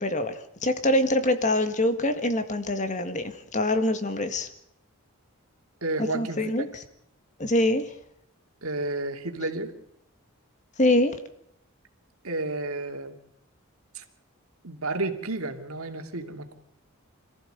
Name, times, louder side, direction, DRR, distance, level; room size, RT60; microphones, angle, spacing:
voice 1, 0.0-4.5 6.1-6.8 7.4-7.9 10.8-11.2, left 1 dB, 35° left, 1.7 m, -25 dB
voice 2, 5.8-6.7 8.6-9.7 12.2-13.2 13.9-14.0 14.6-16.5, right 2 dB, 80° right, 2.7 m, -31 dB
26.0 x 15.0 x 8.0 m
head